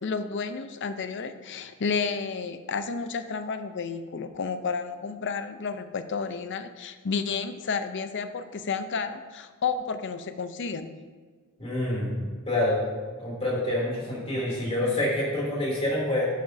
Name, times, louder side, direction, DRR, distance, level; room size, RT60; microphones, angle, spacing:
voice 1, 0.0-11.0, left 5 dB, 55° left, 9 dB, 0.6 m, -31 dB
voice 2, 11.6-12.2 12.5-12.8 13.2-16.3, left 1 dB, 25° left, -5 dB, 2.9 m, -27 dB
11.5 x 9.2 x 2.7 m, 1.5 s
head